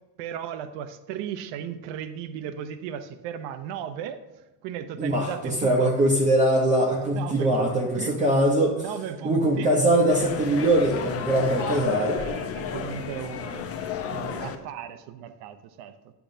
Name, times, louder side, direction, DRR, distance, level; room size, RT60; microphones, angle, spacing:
voice 1, 0.2-4.2 4.6-5.9 7.1-8.2 8.8-9.7 11.6-13.7 14.0-15.9, right 9 dB, 80° right, 11 dB, 0.7 m, -36 dB
voice 2, 5.0-8.7 9.2-12.2, right 1 dB, 20° right, -2 dB, 0.7 m, -22 dB
sound 1, 10.1-14.5, left 7 dB, 35° left, 0.6 m, -32 dB
8.7 x 7.0 x 2.6 m, 1.1 s
cardioid pair, 145°, 42 cm